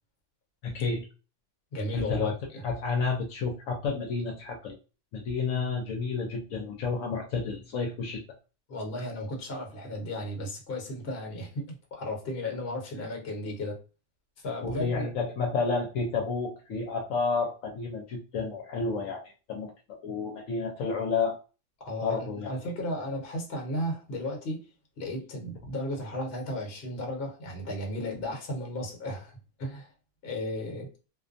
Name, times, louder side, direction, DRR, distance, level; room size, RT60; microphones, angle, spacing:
voice 1, 0.6-1.0 1.9-2.4 2.6-4.7 5.1-8.2 14.6-19.2 19.5-19.7 20.0-21.4 22.0-22.5, left 4 dB, 75° left, 1.0 m, -30 dB
voice 2, 1.7-2.6 8.7-13.8 14.4-15.1 21.8-24.6 25.0-29.9 30.2-30.9, left 1 dB, 50° left, 1.1 m, -35 dB
2.5 x 2.2 x 2.5 m
omnidirectional pair, 1.4 m